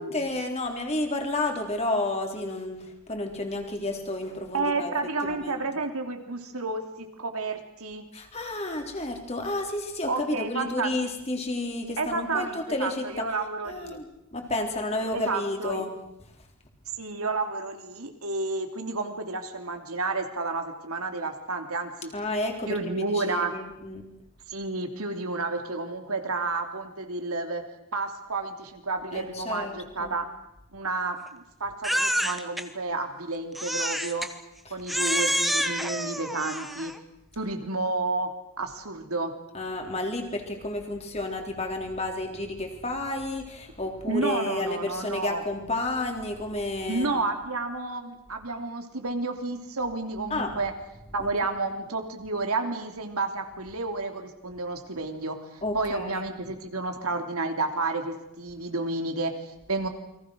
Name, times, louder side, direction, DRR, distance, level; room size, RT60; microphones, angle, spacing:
voice 1, 0.0-4.9 5.2-5.6 8.1-13.2 13.6-15.9 22.1-24.1 29.1-30.1 34.7-34.8 39.5-47.1 50.3-50.6 51.2-51.3 55.6-56.2, left 2 dB, 30° left, 3 dB, 3.7 m, -31 dB
voice 2, 4.5-8.0 10.1-10.9 12.0-14.0 15.1-15.8 17.0-22.1 22.7-23.5 24.5-27.6 27.9-30.3 30.7-34.3 34.7-36.9 37.4-38.3 38.6-39.3 44.1-45.4 46.9-50.7 51.1-59.9, right 3 dB, 80° right, 5 dB, 3.2 m, -31 dB
Crying sobbing, 31.8-32.6 33.5-34.3 34.9-37.0, equal, ahead, 1.2 m, -28 dB
29.5 x 23.0 x 6.4 m, 0.88 s
head